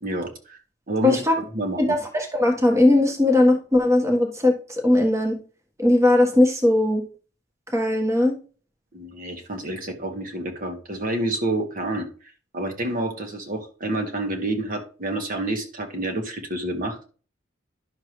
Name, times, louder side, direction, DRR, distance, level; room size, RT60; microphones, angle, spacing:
voice 1, 0.0-0.6 0.9-1.9 8.9-12.1 12.5-17.0, right 1 dB, 50° right, 3 dB, 1.6 m, -28 dB
voice 2, 1.0-1.4 1.9-5.3 5.8-7.0 7.7-8.4, left 1 dB, 15° right, 2 dB, 1.4 m, -19 dB
11.0 x 6.6 x 3.2 m, 0.38 s
head